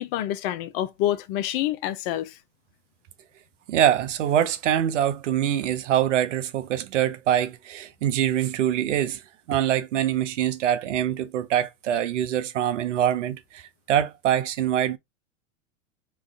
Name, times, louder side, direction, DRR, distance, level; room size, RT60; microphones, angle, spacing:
voice 1, 0.0-2.3, left 13 dB, 50° left, 0.6 m, -27 dB
voice 2, 3.7-9.2 9.5-15.0, right 10 dB, 75° right, 0.7 m, -24 dB
3.1 x 2.5 x 3.5 m
hypercardioid pair, 95°, 37 cm